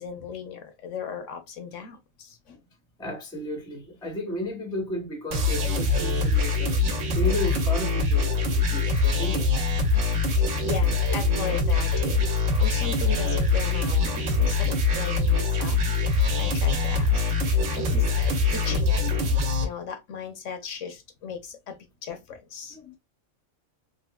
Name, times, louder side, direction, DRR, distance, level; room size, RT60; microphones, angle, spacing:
voice 1, 0.0-2.6 9.9-15.8 16.4-19.2 19.6-23.0, left 6 dB, 65° left, 0.9 m, -37 dB
voice 2, 3.0-9.7 16.2-16.4 18.3-18.4, equal, 5° left, 0.5 m, -34 dB
sound 1, 5.3-19.6, left 3 dB, 60° right, 1.1 m, -23 dB
3.6 x 2.7 x 2.2 m
omnidirectional pair, 1.5 m